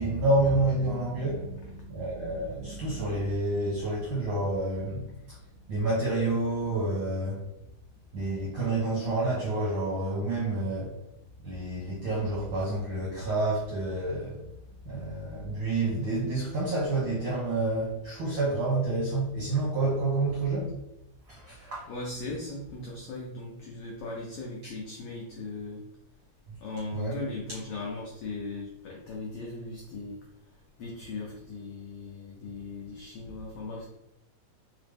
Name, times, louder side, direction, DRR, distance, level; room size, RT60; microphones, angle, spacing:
voice 1, 0.0-5.4 5.7-7.4 8.1-11.0 11.4-14.4 14.8-20.7 21.3-21.9 24.6-24.7 26.9-27.2, right 2 dB, 70° right, -6 dB, 1.1 m, -29 dB
voice 2, 21.5-25.8 26.6-30.2 30.8-33.9, left 3 dB, 85° left, -2 dB, 1.3 m, -38 dB
4.8 x 2.0 x 3.3 m, 0.90 s
omnidirectional pair, 3.4 m